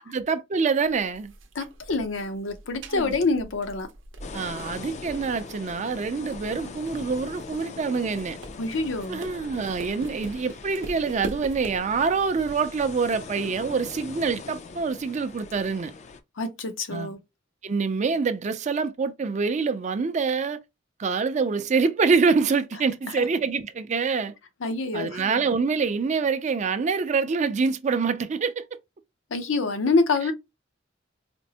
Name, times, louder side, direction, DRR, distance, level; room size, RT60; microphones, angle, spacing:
voice 1, 0.1-1.3 2.9-3.2 4.3-8.4 9.1-15.9 16.9-17.1 17.6-20.6 21.0-24.3 24.9-28.7, right 5 dB, 40° right, 0.4 m, -25 dB
sound 1, 0.8-11.9, right 2 dB, 75° right, 0.6 m, -43 dB
voice 2, 1.6-3.9 8.6-9.2 16.4-17.2 23.2-23.3 24.6-25.2 29.3-30.3, left 3 dB, 80° left, 0.7 m, -26 dB
sound 2, 4.2-16.2, left 4 dB, 35° left, 0.4 m, -41 dB
4.3 x 2.0 x 2.8 m
head